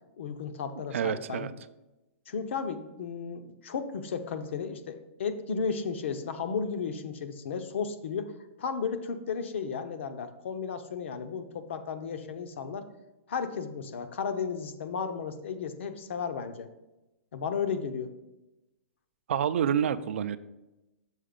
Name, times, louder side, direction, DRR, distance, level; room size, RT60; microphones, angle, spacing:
voice 1, 0.2-1.5 2.3-12.9 13.3-16.7 17.3-18.1, left 6 dB, 60° left, 9 dB, 0.7 m, -34 dB
voice 2, 0.9-1.5 19.3-20.4, right 9 dB, 65° right, 13 dB, 0.4 m, -28 dB
6.4 x 4.8 x 5.1 m, 0.99 s
hypercardioid pair, 170°, 7 cm